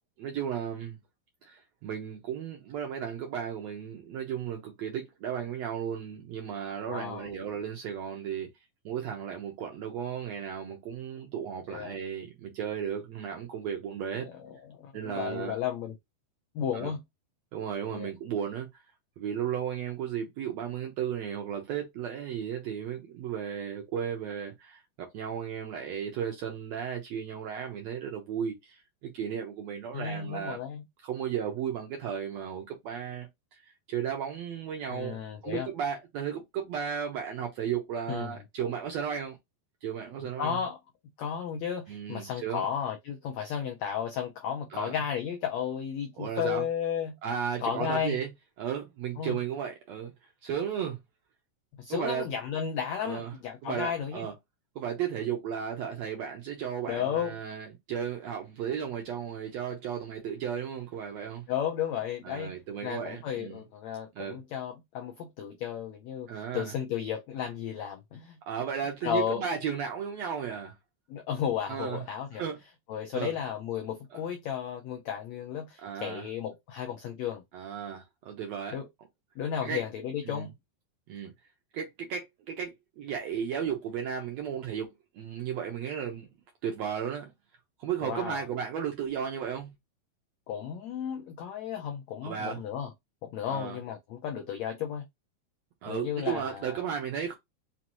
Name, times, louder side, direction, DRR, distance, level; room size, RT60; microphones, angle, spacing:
voice 1, 0.2-1.0 1.4-8.5 8.8-14.3 14.9-15.6 16.7-16.9 17.5-18.8 19.2-30.6 31.0-33.6 33.9-39.4 39.8-40.6 41.9-42.7 44.7-44.9 46.2-46.6 47.2-48.3 48.6-50.1 50.4-51.0 51.9-52.3 53.0-53.3 53.6-54.3 54.7-61.4 62.2-63.6 64.2-64.4 66.3-66.7 68.5-70.7 71.7-72.0 72.3-72.6 73.1-73.3 74.1-74.2 75.8-76.2 77.5-78.8 79.6-79.8 80.2-80.5 81.1-81.3 81.7-86.3 86.6-87.3 87.8-89.7 92.2-92.6 93.5-93.8 95.8-97.3, right 8 dB, 70° right, 1.6 m, -34 dB
voice 2, 6.9-7.4 11.7-12.0 14.2-15.9 16.5-17.0 17.9-18.1 29.9-30.8 34.9-35.7 38.1-38.3 40.4-40.8 41.2-47.2 47.6-48.2 49.2-49.4 51.8-54.3 56.9-57.3 61.5-62.5 62.8-68.4 69.0-69.4 71.1-72.4 72.9-77.4 78.7-78.9 79.4-80.5 88.0-88.5 90.5-92.9 93.2-95.0 95.9-96.8, left 8 dB, 85° left, 1.5 m, -33 dB
5.6 x 2.5 x 2.9 m
omnidirectional pair, 3.9 m